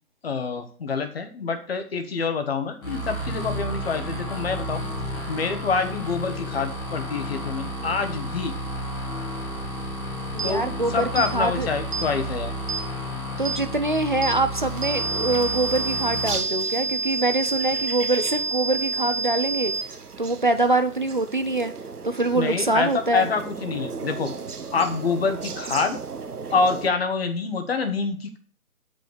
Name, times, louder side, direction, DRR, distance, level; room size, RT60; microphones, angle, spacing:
voice 1, 0.2-4.8 5.3-8.5 10.4-12.5 22.3-24.3 24.7-26.0 26.5-28.4, left 4 dB, 40° left, 7 dB, 1.4 m, -26 dB
sound 1, 2.8-16.4, equal, 10° left, 1.6 m, -32 dB
voice 2, 10.3-11.7 13.4-19.7 20.2-21.7 22.0-23.3, right 2 dB, 35° right, 9 dB, 0.5 m, -24 dB
sound 2, 10.4-10.5 11.2-11.3 11.9-12.1 12.7-12.8 13.4-13.6 14.2-14.4 14.8-19.8, right 3 dB, 55° right, 0.9 m, -28 dB
sound 3, 14.6-26.9, right 5 dB, 80° right, 1.2 m, -37 dB
9.0 x 5.4 x 5.2 m, 0.42 s
figure-of-eight pair, 150°, 45 cm